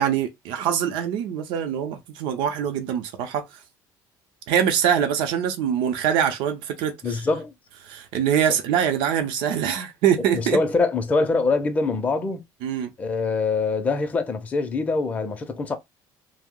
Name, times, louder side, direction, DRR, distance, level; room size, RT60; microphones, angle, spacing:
voice 1, 0.0-3.5 4.5-7.2 7.8-10.6 12.6-12.9, right 9 dB, 80° right, 0.6 m, -24 dB
voice 2, 7.0-7.5 10.3-12.4 13.0-15.8, left 3 dB, 20° left, 0.5 m, -24 dB
2.6 x 2.0 x 3.6 m
cardioid pair, 175°, 8 cm